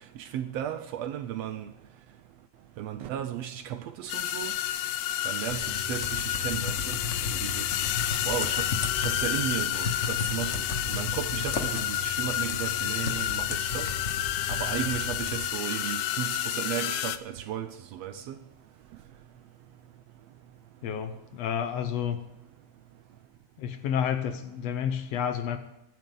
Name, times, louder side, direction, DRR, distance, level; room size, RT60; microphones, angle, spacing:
voice 1, 0.2-1.7 2.8-4.5 5.2-7.0 7.3-7.8 8.3-10.6 10.9-13.9 14.5-18.3, right 11 dB, 75° right, 1.6 m, -35 dB
sound 1, 4.1-17.2, left 12 dB, 85° left, 2.0 m, -30 dB
sound 2, 5.4-15.5, left 4 dB, 45° left, 0.9 m, -35 dB
voice 2, 20.8-22.2 23.6-25.6, left 8 dB, 65° left, 1.9 m, -30 dB
23.5 x 10.5 x 3.9 m
omnidirectional pair, 3.3 m